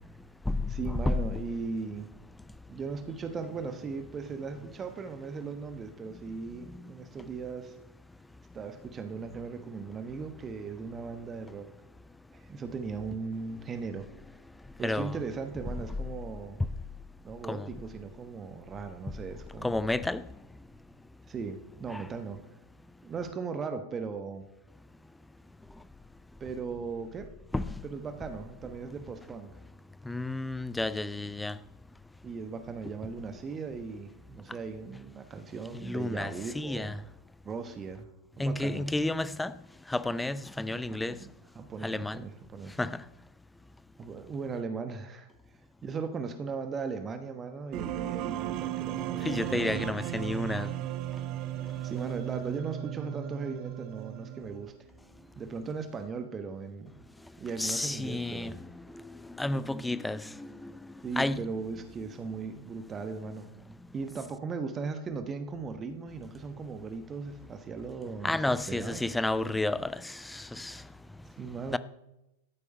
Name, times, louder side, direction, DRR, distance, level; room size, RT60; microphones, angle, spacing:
voice 1, 0.7-2.1 2.7-7.8 8.5-11.7 12.3-14.1 14.8-16.6 17.2-19.7 21.3-22.4 23.0-24.5 26.4-27.3 27.8-29.5 32.2-37.1 37.4-38.1 38.4-38.8 40.9-41.2 41.5-42.8 44.0-45.3 45.8-50.0 51.8-54.7 55.4-57.0 57.4-58.5 61.0-63.5 63.9-69.0 71.4-71.8, right 5 dB, 20° right, 1.1 m, -38 dB
voice 2, 14.8-15.1 17.5-17.6 19.6-20.2 21.9-22.0 27.5-27.6 30.1-31.5 35.8-37.0 38.4-39.5 39.9-41.2 41.8-42.2 42.8-43.0 49.2-50.7 57.6-58.5 59.4-60.7 61.2-61.5 68.2-70.7 71.7-71.8, left 2 dB, 5° left, 0.5 m, -31 dB
sound 1, 47.7-54.8, right 13 dB, 40° right, 0.6 m, -36 dB
13.5 x 8.4 x 5.4 m
figure-of-eight pair, 90°, 0 cm